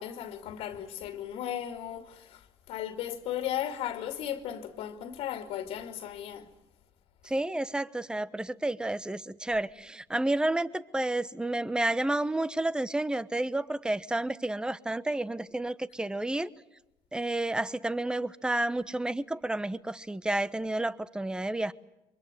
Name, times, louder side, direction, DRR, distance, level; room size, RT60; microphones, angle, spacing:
voice 1, 0.0-2.4 2.7-6.5, left 10 dB, 80° left, 2.5 m, -36 dB
voice 2, 7.2-16.5 17.1-21.7, right 1 dB, 10° right, 1.1 m, -30 dB
28.0 x 24.0 x 7.8 m
cardioid pair, 90°, 10 cm